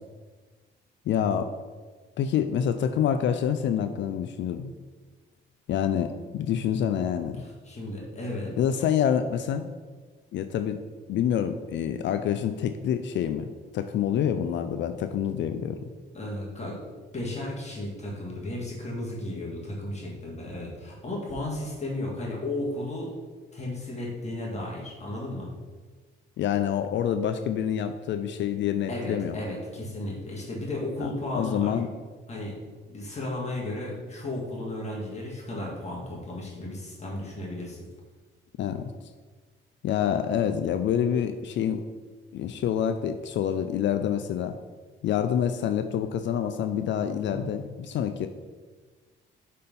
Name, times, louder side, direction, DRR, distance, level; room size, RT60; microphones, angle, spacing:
voice 1, 1.1-1.5 2.2-4.7 5.7-7.4 8.6-9.7 10.3-10.8 11.1-15.8 26.4-29.4 31.0-31.9 38.6-38.9 39.8-41.8 42.3-44.5 45.0-48.3, left 9 dB, 65° left, 9 dB, 0.4 m, -27 dB
voice 2, 7.4-8.5 16.1-16.8 17.1-23.1 23.5-25.5 28.9-31.8 32.3-32.5 32.9-37.8 47.3-47.5, left 1 dB, 35° left, -3 dB, 1.7 m, -34 dB
5.3 x 4.3 x 5.3 m, 1.4 s
cardioid pair, 90°, 20 cm